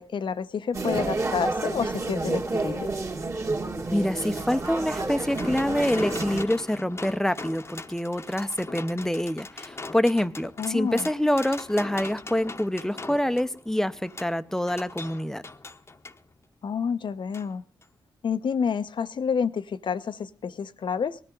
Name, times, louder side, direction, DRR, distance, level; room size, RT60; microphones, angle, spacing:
voice 1, 0.0-2.9 10.6-11.1 16.6-17.6 18.2-21.2, left 6 dB, 70° left, 12 dB, 0.8 m, -29 dB
sound 1, 0.7-6.4, right 2 dB, 35° right, 2.0 m, -30 dB
sound 2, 3.9-16.2 17.3-17.5 17.8-17.9, left 3 dB, 30° left, 1.0 m, -40 dB
voice 2, 3.9-15.4, left 1 dB, 5° left, 12 dB, 0.8 m, -26 dB
19.0 x 13.5 x 3.9 m, 0.35 s
cardioid pair, 75°, 9 cm